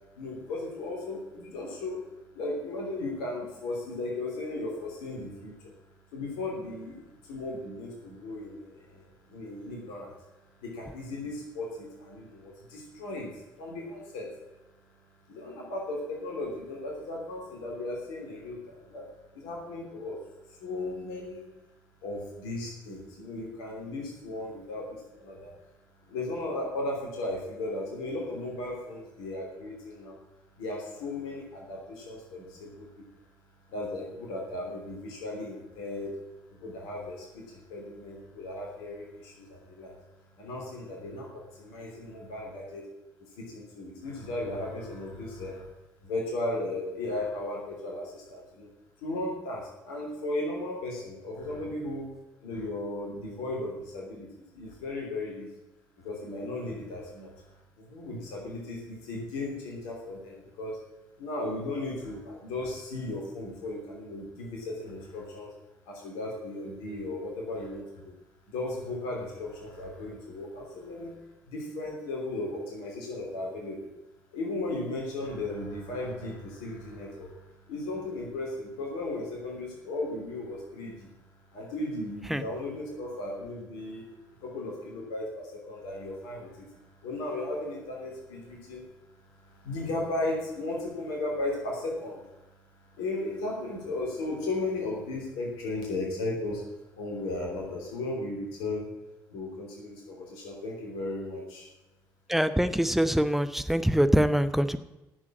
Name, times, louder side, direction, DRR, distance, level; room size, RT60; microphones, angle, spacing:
voice 1, 0.1-2.0 2.3-5.7 6.1-10.2 10.6-13.3 13.6-14.3 15.3-19.0 19.3-20.2 20.5-21.4 22.0-25.5 26.1-30.2 30.6-33.0 33.7-36.1 36.6-39.9 40.4-42.8 43.4-45.7 46.0-48.7 49.0-52.1 52.4-55.5 56.0-57.3 57.8-60.8 61.2-65.5 65.9-68.1 68.5-71.1 71.5-73.9 74.3-81.1 81.5-84.1 84.4-86.7 87.0-88.8 89.4-92.2 93.0-96.6 96.9-98.9 99.3-101.7, left 2 dB, 65° left, -1 dB, 3.1 m, -36 dB
voice 2, 102.3-104.8, equal, ahead, 11 dB, 0.8 m, -24 dB
11.0 x 7.3 x 8.5 m, 0.96 s
figure-of-eight pair, 45°, 10 cm